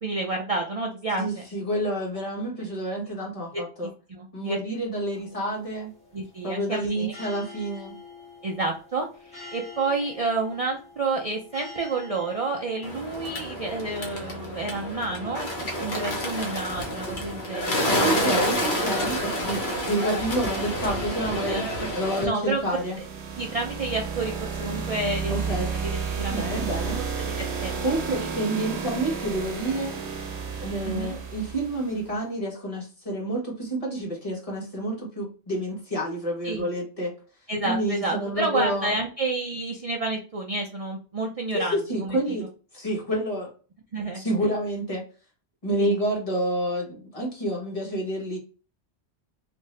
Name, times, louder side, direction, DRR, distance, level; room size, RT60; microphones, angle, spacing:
voice 1, 0.0-1.4 3.5-4.6 6.1-7.1 8.4-18.7 21.5-21.9 22.2-22.6 23.4-26.6 26.9-27.8 28.2-28.3 30.8-31.2 36.4-36.6 37.5-42.5 43.9-44.5 45.8-46.0, right 3 dB, 50° right, 0 dB, 0.4 m, -30 dB
voice 2, 1.2-3.9 4.3-5.9 6.4-7.9 17.9-21.6 21.9-23.0 25.3-25.7 26.3-27.0 27.8-30.0 30.6-37.1 37.6-38.9 41.5-42.4 42.7-43.5 44.1-45.0 45.6-48.4, right 1 dB, 35° left, -3 dB, 1.2 m, -29 dB
sound 1, 5.1-14.2, left 3 dB, 5° left, 1.3 m, -47 dB
Bird, 12.8-22.2, equal, 50° left, 0.9 m, -28 dB
sound 2, 22.3-32.1, right 5 dB, 75° right, 1.0 m, -32 dB
2.7 x 2.6 x 3.1 m, 0.36 s
omnidirectional pair, 1.1 m